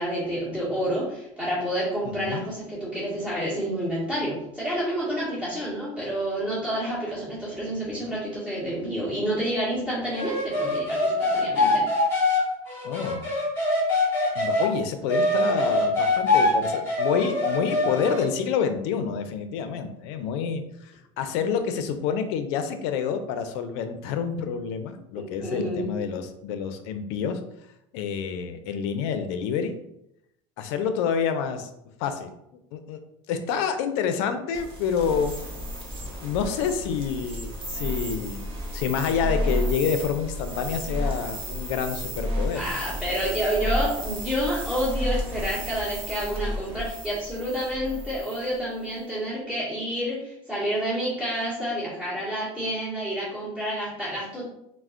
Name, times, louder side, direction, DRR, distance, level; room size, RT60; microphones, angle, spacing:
voice 1, 0.0-11.8 25.1-25.9 42.5-54.4, equal, 10° right, -10 dB, 1.5 m, -29 dB
voice 2, 2.0-2.5 12.8-13.3 14.4-27.4 27.9-29.7 30.6-31.7 32.0-32.3 32.7-33.0 33.3-35.3 36.2-42.7, left 7 dB, 80° left, 8 dB, 0.4 m, -28 dB
sound 1, 10.1-14.7 15.1-18.3, left 2 dB, 15° left, 1.4 m, -23 dB
sound 2, 34.5-48.6, equal, 40° right, 0.9 m, -32 dB
4.2 x 2.0 x 2.4 m, 0.81 s
supercardioid pair, 125°, 14 cm